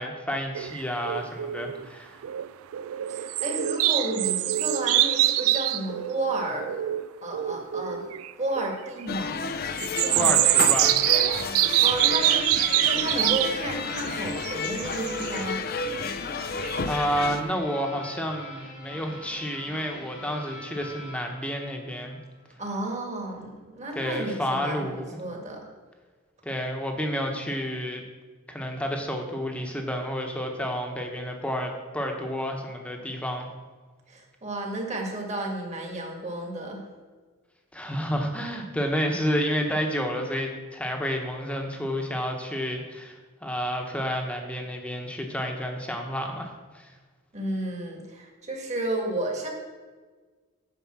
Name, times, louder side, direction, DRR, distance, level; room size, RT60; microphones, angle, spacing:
voice 1, 0.0-2.1 10.1-10.9 16.9-22.2 23.9-25.0 26.4-28.0 28.5-33.5 37.7-46.9, equal, 5° left, 2 dB, 1.0 m, -30 dB
sound 1, 0.5-1.9 2.2-2.5 2.7-7.0 7.3-8.3 8.6-8.7 9.8-13.6 14.0-15.4 16.1-16.2 16.6-16.8 17.2-17.3, right 14 dB, 80° right, 0.3 m, -25 dB
voice 2, 3.1-6.7 7.2-8.0 8.4-9.5 10.0-10.4 11.8-15.6 22.6-25.7 34.1-36.8 47.3-49.5, right 1 dB, 30° right, 1 dB, 1.7 m, -32 dB
sound 2, 9.1-17.4, left 4 dB, 45° left, 0.5 m, -31 dB
sound 3, 11.0-22.3, left 1 dB, 80° left, 2.2 m, -43 dB
9.3 x 5.3 x 6.1 m, 1.4 s
head